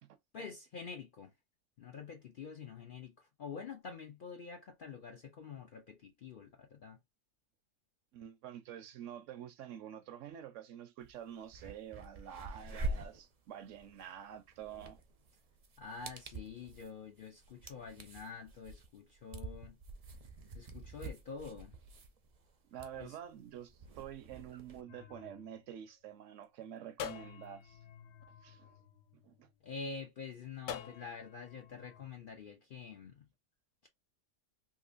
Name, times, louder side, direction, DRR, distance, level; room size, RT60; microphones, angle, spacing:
voice 1, 0.3-1.3 1.8-7.0 15.8-19.8 20.5-21.8 23.0-23.1 29.6-33.3, left 5 dB, 60° left, 0.5 m, -47 dB
voice 2, 8.1-15.0 22.7-27.8 28.4-28.7 29.2-29.5, right 10 dB, 70° right, 0.9 m, -48 dB
sound 1, 11.0-11.1 11.4-24.8, right 2 dB, 45° right, 0.5 m, -46 dB
sound 2, 24.9-26.3 27.0-29.5 30.7-32.1, left 8 dB, 90° left, 1.0 m, -48 dB
3.7 x 2.5 x 2.4 m
omnidirectional pair, 1.4 m